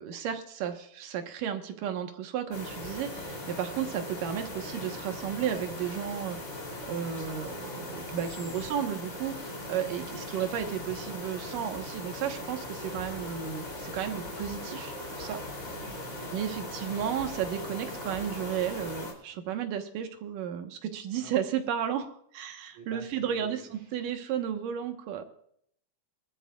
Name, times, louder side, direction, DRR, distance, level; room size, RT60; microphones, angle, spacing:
voice 1, 0.0-6.4 6.9-15.4 16.3-25.3, right 9 dB, 85° right, 6 dB, 2.9 m, -33 dB
sound 1, 2.5-19.1, left 1 dB, 25° left, 3.3 m, -39 dB
voice 2, 8.0-8.8 15.8-16.7 19.3-19.5 21.2-21.4 22.7-24.0, right 4 dB, 65° right, 2 dB, 4.0 m, -52 dB
24.5 x 13.0 x 2.4 m, 0.67 s
omnidirectional pair, 3.7 m